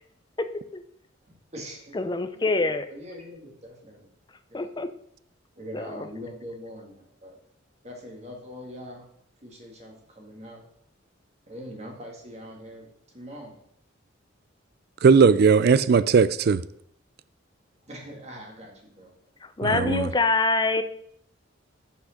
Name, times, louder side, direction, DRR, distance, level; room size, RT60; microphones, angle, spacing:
voice 1, 0.4-0.8 1.9-2.9 4.5-4.9 5.7-6.1 19.4-20.8, left 3 dB, 20° left, 0.5 m, -25 dB
voice 2, 1.3-2.0 2.4-4.1 4.5-4.7 5.6-7.4 7.8-9.1 9.4-10.7 11.5-12.9 13.1-13.6 17.8-19.1, equal, 35° right, 1.9 m, -42 dB
voice 3, 15.0-16.6 19.6-20.1, right 5 dB, 50° right, 0.3 m, -18 dB
6.0 x 5.9 x 6.4 m
head